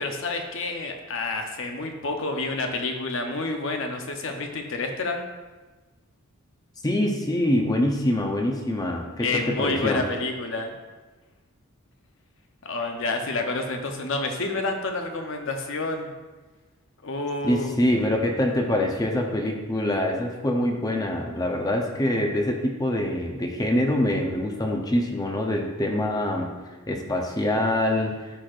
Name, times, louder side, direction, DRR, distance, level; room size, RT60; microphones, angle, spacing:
voice 1, 0.0-5.2 9.2-10.8 12.6-16.1 17.0-17.7, left 3 dB, 60° left, 4 dB, 0.8 m, -29 dB
voice 2, 6.8-10.0 17.4-26.5 26.9-28.4, left 1 dB, 15° left, 2 dB, 0.6 m, -25 dB
12.5 x 4.5 x 2.5 m, 1.2 s
head